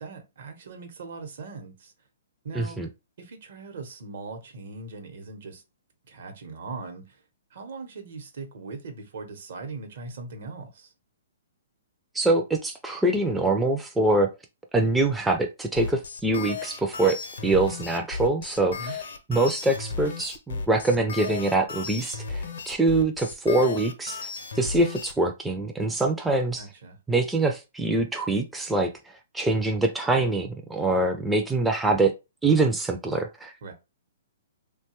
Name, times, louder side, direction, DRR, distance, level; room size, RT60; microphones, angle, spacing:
voice 1, 0.0-1.9 2.4-2.8 3.2-5.6 6.1-7.2 7.5-10.9 18.7-19.0 26.6-27.0 33.6-33.7, right 4 dB, 65° right, 0.9 m, -40 dB
voice 2, 2.5-2.9 12.1-14.3 14.7-17.2 17.4-19.0 19.3-24.3 24.5-26.7 27.1-28.9 29.3-32.1 32.4-33.5, right 2 dB, 5° right, 0.3 m, -24 dB
sound 1, 15.8-25.1, left 4 dB, 75° left, 0.6 m, -35 dB
2.8 x 2.2 x 2.9 m
hypercardioid pair, 140°, 0 cm